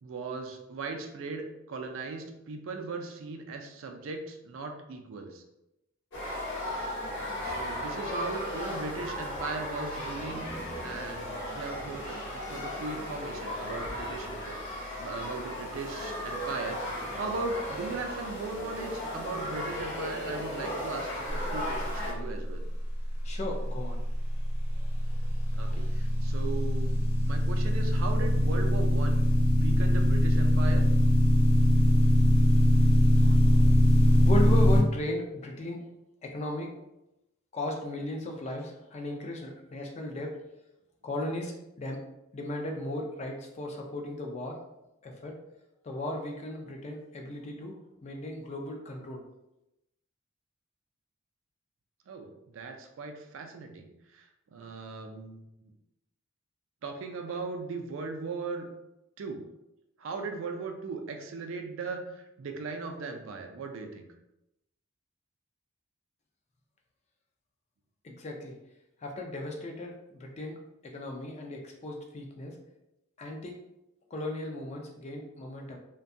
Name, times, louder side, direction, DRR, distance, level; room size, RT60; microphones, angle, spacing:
voice 1, 0.0-5.4 7.4-10.5 10.8-22.6 25.5-27.0 27.3-29.2 29.6-30.8 52.1-55.7 56.8-58.7 59.2-59.4 60.0-64.1, right 3 dB, 65° right, 4 dB, 0.4 m, -38 dB
sound 1, 6.1-22.1, left 1 dB, 55° left, 0.8 m, -36 dB
voice 2, 23.2-24.0 24.8-25.9 33.2-33.7 34.0-35.9 36.2-36.7 37.5-40.4 41.0-42.0 42.3-44.6 45.0-45.4 45.8-49.2 68.0-68.5 69.0-70.6 70.8-72.6 73.2-73.6 74.1-75.8, left 1 dB, 30° left, 2 dB, 0.3 m, -36 dB
sound 2, 24.0-34.8, left 1 dB, 80° left, 0.9 m, -22 dB
2.6 x 2.2 x 2.5 m, 0.90 s
head